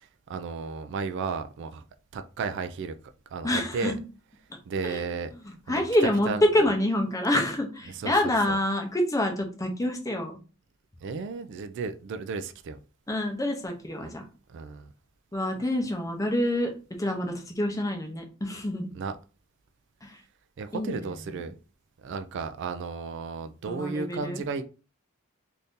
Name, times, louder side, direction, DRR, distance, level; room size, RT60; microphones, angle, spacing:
voice 1, 0.0-1.8 2.1-2.9 3.3-4.0 4.7-5.3 5.7-5.8 6.3-6.7 7.9-8.6 11.0-12.8 14.0-14.1 14.5-14.9 18.9-19.2 20.6-21.5 22.0-24.6, right 5 dB, 55° right, 0.3 m, -34 dB
voice 2, 3.4-4.0 4.8-5.0 5.7-10.4 13.1-14.2 15.3-16.7 17.0-18.9 20.0-20.2 20.7-21.1 23.7-24.4, left 1 dB, 15° left, 0.6 m, -27 dB
2.6 x 2.6 x 3.5 m
head